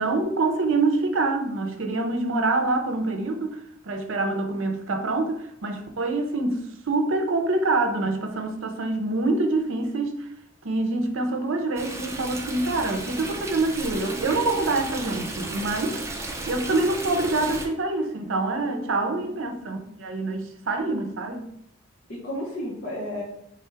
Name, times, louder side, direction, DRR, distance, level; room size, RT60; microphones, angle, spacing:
voice 1, 0.0-10.3 10.6-16.0 16.5-21.5, right 2 dB, 70° right, 5 dB, 0.6 m, -26 dB
Stream, 11.8-17.7, right 2 dB, 15° right, 0.4 m, -34 dB
voice 2, 18.6-19.4 22.1-23.2, left 1 dB, 55° left, -7 dB, 1.0 m, -34 dB
3.6 x 2.3 x 4.4 m, 0.76 s
head